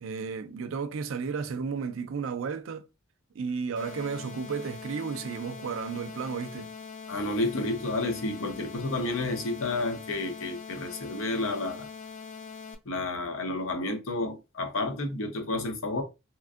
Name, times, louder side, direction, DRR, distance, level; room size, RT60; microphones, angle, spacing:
voice 1, 0.0-2.9 3.4-6.7, right 5 dB, 75° right, 0.4 m, -33 dB
sound 1, 3.8-12.8, left 5 dB, 35° left, 0.4 m, -43 dB
voice 2, 7.1-11.9 12.9-16.0, left 2 dB, 85° left, 0.7 m, -31 dB
2.9 x 2.5 x 2.4 m
head